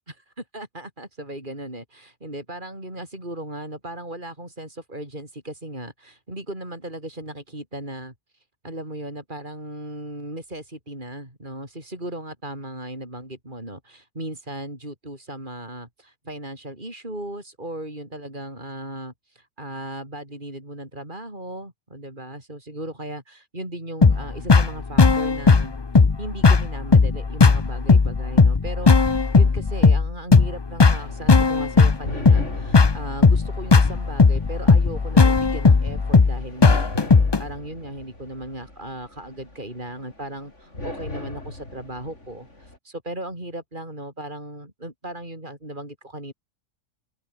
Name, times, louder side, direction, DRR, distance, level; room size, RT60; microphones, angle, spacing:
voice 1, 0.5-8.1 8.6-36.9 37.4-46.3, right 1 dB, 35° right, 7.6 m, -36 dB
sound 1, 24.0-37.4, left 4 dB, 25° left, 0.6 m, -16 dB
sound 2, 30.8-42.8, left 1 dB, 65° left, 7.0 m, -39 dB
open air
omnidirectional pair, 1.3 m